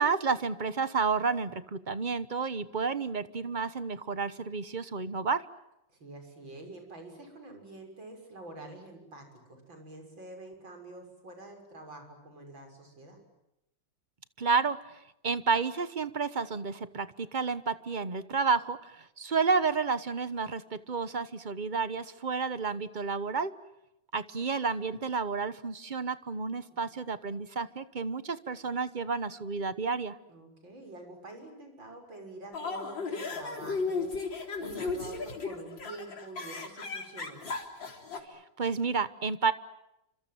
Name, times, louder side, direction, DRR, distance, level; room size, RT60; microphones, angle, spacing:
voice 1, 0.0-5.4 14.4-23.5 24.1-30.2 38.3-39.5, right 5 dB, 30° right, 14 dB, 0.9 m, -31 dB
voice 2, 5.9-13.2 26.7-26.8 30.3-34.1 34.6-37.4, right 2 dB, 90° right, 4 dB, 7.3 m, -47 dB
sound 1, 32.5-38.2, left 4 dB, 75° left, 4.4 m, -35 dB
29.5 x 26.0 x 7.8 m, 0.87 s
omnidirectional pair, 2.0 m